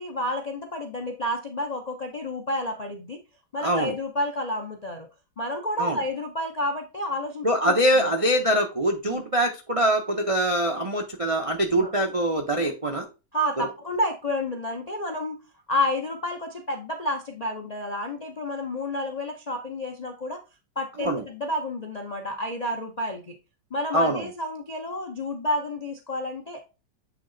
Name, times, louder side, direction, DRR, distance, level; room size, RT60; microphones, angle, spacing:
voice 1, 0.0-3.2 3.5-5.1 5.4-8.1 9.1-9.2 11.7-11.9 13.3-15.4 15.7-20.4 20.8-23.3 23.7-26.6, left 1 dB, 65° left, 4 dB, 0.4 m, -30 dB
voice 2, 3.6-3.9 5.8-6.0 7.4-13.1 13.6-13.7 21.0-21.2 23.9-24.3, right 1 dB, 65° right, 1 dB, 0.3 m, -23 dB
8.4 x 3.2 x 3.9 m, 0.30 s
omnidirectional pair, 2.0 m